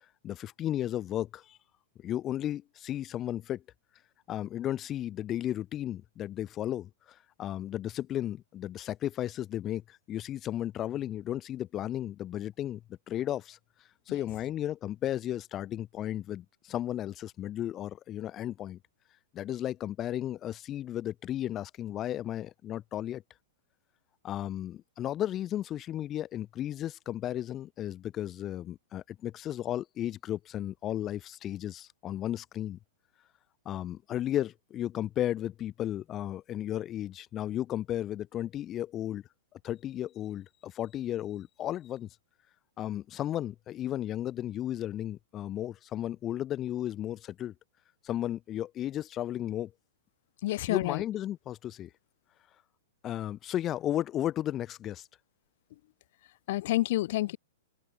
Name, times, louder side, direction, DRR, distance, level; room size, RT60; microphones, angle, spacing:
voice 1, 0.2-1.6 2.0-3.6 4.3-13.6 14.1-18.8 19.3-23.2 24.2-32.8 33.7-39.2 39.5-42.1 42.8-47.5 48.0-49.7 50.7-51.9 53.0-55.1, left 12 dB, 15° left, 1.9 m, -34 dB
voice 2, 50.4-51.0 56.5-57.4, left 16 dB, 40° left, 1.6 m, -28 dB
hypercardioid pair, 175°, 0 cm